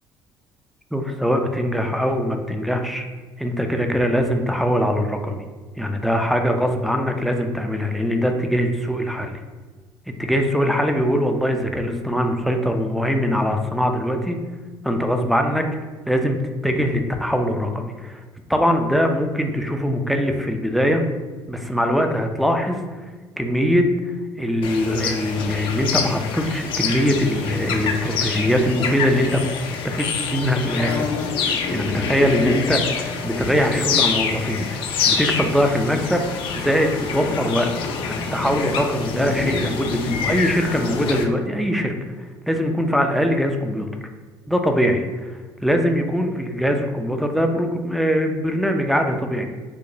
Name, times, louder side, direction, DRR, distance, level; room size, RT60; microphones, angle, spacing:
voice 1, 0.9-3.0 3.4-5.4 5.8-9.4 10.2-14.4 14.8-15.6 16.1-18.2 18.5-21.0 21.5-23.1 23.4-29.4 29.8-31.1 31.7-36.3 36.6-37.7 38.0-41.9 42.5-43.9 44.5-49.5, equal, ahead, 4 dB, 0.4 m, -22 dB
sound 1, 24.6-41.2, left 5 dB, 65° left, 0.5 m, -26 dB
4.7 x 2.1 x 2.6 m, 1.3 s
supercardioid pair, 80°, 9 cm